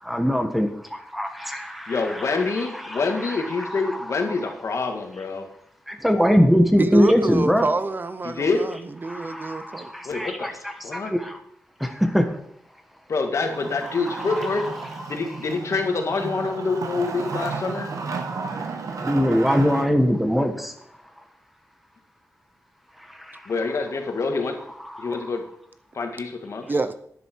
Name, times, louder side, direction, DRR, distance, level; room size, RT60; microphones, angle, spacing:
voice 1, 0.0-4.2 5.9-7.6 9.0-11.4 11.8-12.3 13.9-14.9 17.3-17.9 18.9-20.7 23.0-23.5 24.8-25.3, equal, ahead, 6 dB, 1.2 m, -23 dB
voice 2, 1.9-5.5 8.2-8.7 10.0-11.1 13.1-14.7 15.1-17.9 23.5-24.6 25.0-25.4 25.9-26.7, left 4 dB, 60° left, 4 dB, 1.9 m, -26 dB
voice 3, 6.8-9.9 26.7-26.9, right 3 dB, 35° right, 11 dB, 0.7 m, -26 dB
Wood, 13.4-19.9, right 4 dB, 75° right, 1.5 m, -33 dB
11.5 x 10.5 x 4.6 m, 0.66 s
wide cardioid pair, 135°, 6 cm